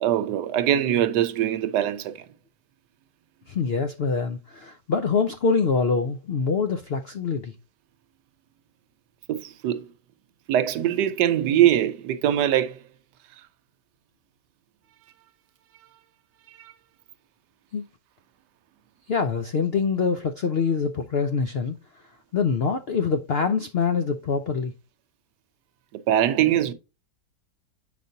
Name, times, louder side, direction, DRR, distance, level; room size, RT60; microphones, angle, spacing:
voice 1, 0.0-2.2 9.3-9.9 10.5-12.8 16.6-16.7 26.1-26.7, right 11 dB, 75° right, 1.3 m, -22 dB
voice 2, 3.5-7.5 17.7-17.8 19.1-21.8 22.3-24.7, left 5 dB, 75° left, 0.5 m, -25 dB
7.9 x 5.1 x 2.7 m
omnidirectional pair, 1.9 m